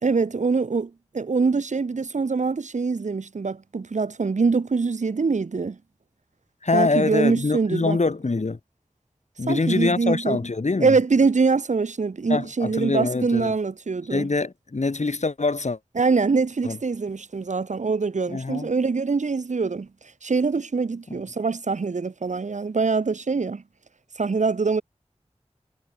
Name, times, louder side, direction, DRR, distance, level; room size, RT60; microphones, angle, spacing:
voice 1, 0.0-5.8 6.7-8.0 9.5-10.4 10.8-14.3 16.0-19.9 20.2-23.6 24.2-24.8, right 4 dB, 80° right, 0.9 m, -24 dB
voice 2, 6.6-8.6 9.4-10.9 12.3-13.5 14.1-15.8 16.6-16.8 18.3-18.7, left 3 dB, 70° left, 2.4 m, -24 dB
wide cardioid pair, 40°, 12 cm